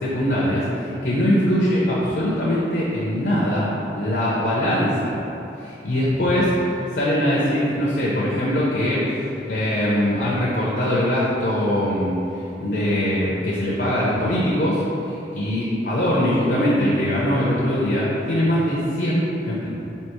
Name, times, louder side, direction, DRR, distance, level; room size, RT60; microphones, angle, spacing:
voice 1, 0.0-5.1 5.6-6.5 6.9-9.1 9.4-19.7, equal, 60° left, -7 dB, 0.6 m, -22 dB
4.5 x 2.9 x 3.0 m, 2.9 s
head